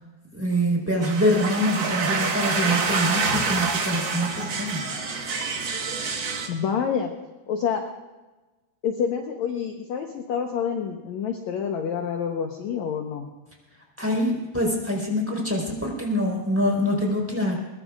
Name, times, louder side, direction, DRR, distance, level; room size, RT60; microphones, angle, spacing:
voice 1, 0.3-4.9 14.0-17.6, equal, 5° right, -1 dB, 4.0 m, -25 dB
sound 1, 1.0-6.5, right 4 dB, 50° right, 1.4 m, -27 dB
voice 2, 6.5-7.1 7.5-7.8 8.8-13.2, left 7 dB, 65° left, 3 dB, 1.9 m, -27 dB
22.5 x 20.5 x 2.5 m, 1.2 s
omnidirectional pair, 4.4 m